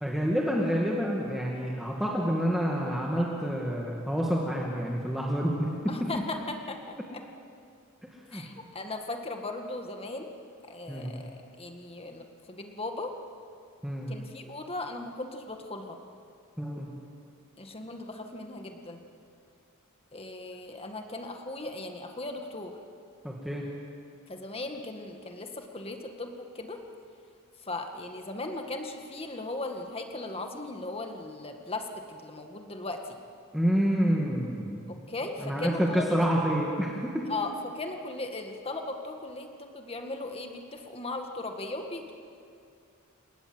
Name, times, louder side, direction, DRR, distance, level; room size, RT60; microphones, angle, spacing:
voice 1, 0.0-6.2 8.3-8.4 10.9-11.2 13.8-14.2 16.6-16.9 23.2-23.6 33.5-34.9 35.4-37.3, equal, ahead, -3 dB, 2.3 m, -28 dB
voice 2, 5.9-7.2 8.3-10.3 10.7-11.3 11.6-13.1 14.1-16.0 17.6-19.0 20.1-22.8 24.3-26.8 27.7-33.0 34.9-36.1 37.3-42.1, left 2 dB, 25° left, 4 dB, 1.9 m, -37 dB
29.0 x 18.5 x 8.0 m, 2.4 s
head